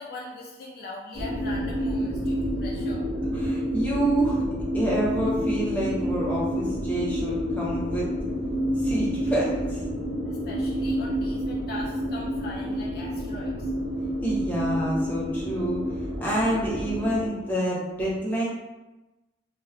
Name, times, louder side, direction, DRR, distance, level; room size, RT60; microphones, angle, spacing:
voice 1, 0.0-3.1 10.3-13.7, left 2 dB, 50° left, -3 dB, 0.3 m, -40 dB
sound 1, 1.1-17.3, equal, 20° right, 0.8 m, -29 dB
voice 2, 3.4-4.4 4.7-8.1 8.8-9.8 14.2-15.8 16.2-18.5, right 1 dB, 10° left, -6 dB, 0.6 m, -27 dB
2.2 x 2.1 x 3.3 m, 1.1 s
head